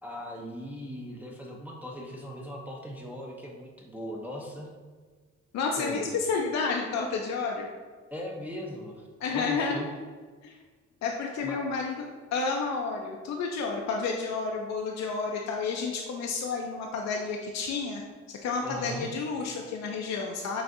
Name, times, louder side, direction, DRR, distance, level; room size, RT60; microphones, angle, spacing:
voice 1, 0.0-4.7 5.8-6.2 8.1-9.9 11.4-11.6 18.6-19.1, equal, 5° right, -2 dB, 0.5 m, -39 dB
voice 2, 5.5-7.7 9.2-9.8 10.4-10.5 11.0-18.0 18.4-20.6, left 4 dB, 60° left, 1 dB, 0.5 m, -30 dB
6.0 x 2.5 x 2.5 m, 1.5 s
cardioid pair, 90°, 30 cm